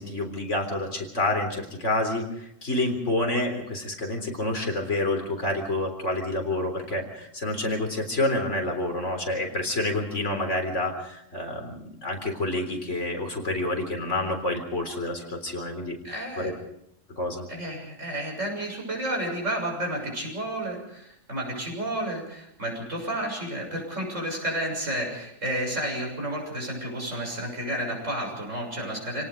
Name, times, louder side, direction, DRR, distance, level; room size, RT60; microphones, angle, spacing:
voice 1, 0.0-16.0 16.4-16.5 17.1-17.5, left 2 dB, 65° left, 3 dB, 4.1 m, -28 dB
voice 2, 16.0-16.5 17.5-29.3, right 1 dB, 70° right, 0 dB, 7.4 m, -31 dB
28.0 x 18.0 x 5.1 m, 0.76 s
omnidirectional pair, 1.3 m